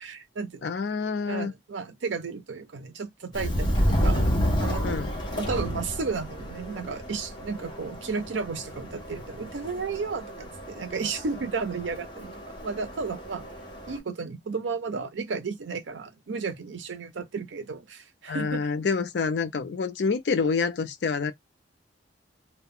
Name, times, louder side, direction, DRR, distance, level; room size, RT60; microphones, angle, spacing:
voice 1, 0.0-0.7 1.3-4.3 4.6-5.1 5.4-13.5 13.9-18.7, right 4 dB, 85° right, 0.6 m, -33 dB
voice 2, 0.6-1.5 4.8-5.1 18.3-21.3, left 5 dB, 65° left, 0.4 m, -27 dB
Subway metro underground, 3.3-14.0, equal, 25° left, 0.7 m, -30 dB
2.3 x 2.1 x 3.5 m
head